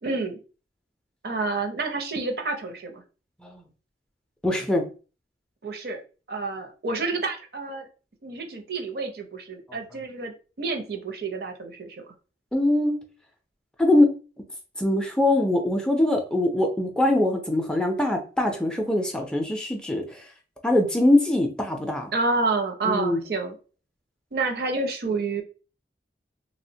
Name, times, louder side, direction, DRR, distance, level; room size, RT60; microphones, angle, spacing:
voice 1, 0.0-0.4 1.2-3.0 5.6-6.0 6.3-7.9 8.2-12.1 22.1-23.5 24.3-25.4, right 3 dB, 60° right, 5 dB, 0.5 m, -29 dB
voice 2, 4.4-4.8 12.5-13.0 13.8-14.1 14.8-20.2 20.6-22.1 22.9-23.2, left 1 dB, 5° left, 2 dB, 0.3 m, -22 dB
3.1 x 2.0 x 2.7 m, 0.35 s
head